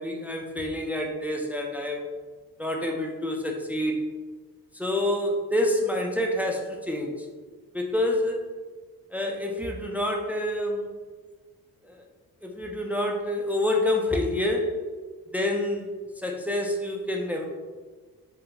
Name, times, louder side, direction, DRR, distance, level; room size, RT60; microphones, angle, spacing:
voice 1, 0.0-2.0 2.6-4.1 4.7-7.3 7.7-8.4 9.1-10.9 11.8-12.0 12.4-14.8 15.3-15.9 16.2-17.4, left 1 dB, 5° right, 1 dB, 0.3 m, -27 dB
3.8 x 2.0 x 2.8 m, 1.4 s
cardioid pair, 90°, 35 cm